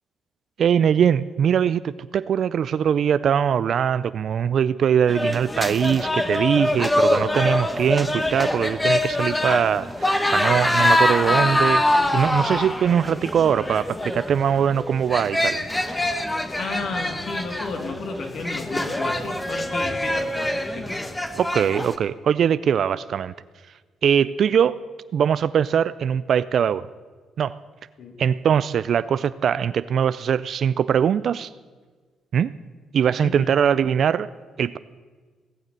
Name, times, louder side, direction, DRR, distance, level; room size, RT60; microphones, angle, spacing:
voice 1, 0.6-11.8 12.1-15.7 21.4-23.3 24.0-24.8 25.1-26.9 27.4-27.6 28.2-31.5 32.3-32.5 32.9-34.3 34.6-34.8, right 8 dB, 60° right, 15 dB, 0.4 m, -21 dB
sound 1, 5.1-21.9, left 1 dB, 10° left, 1.1 m, -24 dB
voice 2, 16.6-20.9 28.0-28.2 33.2-33.5, left 3 dB, 60° left, 4 dB, 2.3 m, -32 dB
17.5 x 6.6 x 8.9 m, 1.4 s
cardioid pair, 90°, 0 cm